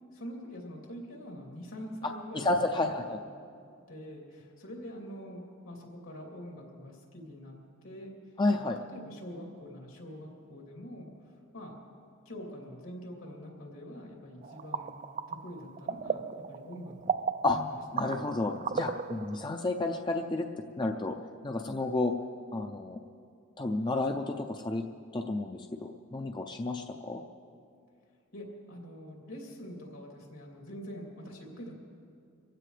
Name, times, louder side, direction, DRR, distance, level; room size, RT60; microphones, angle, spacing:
voice 1, 0.1-2.6 3.0-3.1 3.9-8.1 8.6-11.1 11.5-11.8 12.2-14.9 15.3-17.7 28.3-31.7, equal, 80° left, -1 dB, 3.0 m, -45 dB
voice 2, 2.3-3.2 8.4-8.8 17.4-17.6 17.9-20.5 20.8-21.2 21.4-22.1 22.5-23.0 23.6-24.8 25.1-27.2, left 2 dB, 20° left, 4 dB, 0.5 m, -31 dB
sound 1, 14.4-19.5, right 6 dB, 40° right, 0.3 m, -36 dB
24.0 x 15.5 x 3.3 m, 2.4 s
head